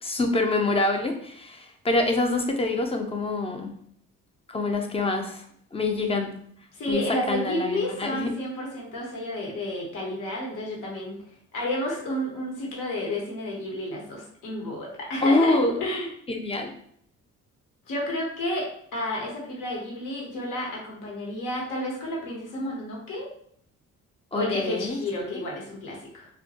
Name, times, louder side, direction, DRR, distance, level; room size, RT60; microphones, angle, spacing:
voice 1, 0.0-3.7 4.5-5.4 5.7-6.3 6.9-8.3 15.2-15.8 16.3-16.7 24.3-25.4, left 2 dB, 20° left, 4 dB, 0.5 m, -26 dB
voice 2, 6.7-11.2 11.5-16.1 17.9-23.3 24.3-26.3, left 1 dB, 70° left, -2 dB, 1.0 m, -31 dB
2.2 x 2.2 x 2.8 m, 0.65 s
supercardioid pair, 70°, 32 cm